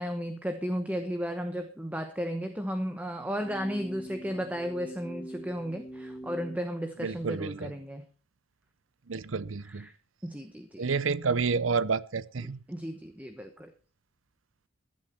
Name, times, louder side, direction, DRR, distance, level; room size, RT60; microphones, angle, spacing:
voice 1, 0.0-8.1 9.6-9.9 10.2-10.9 12.4-13.7, equal, 10° right, 1.0 m, -34 dB
sound 1, 3.4-6.6, right 1 dB, 20° left, 1.7 m, -43 dB
voice 2, 7.0-7.7 9.1-9.9 10.8-12.6, right 5 dB, 80° right, 0.7 m, -29 dB
15.5 x 11.0 x 4.3 m
head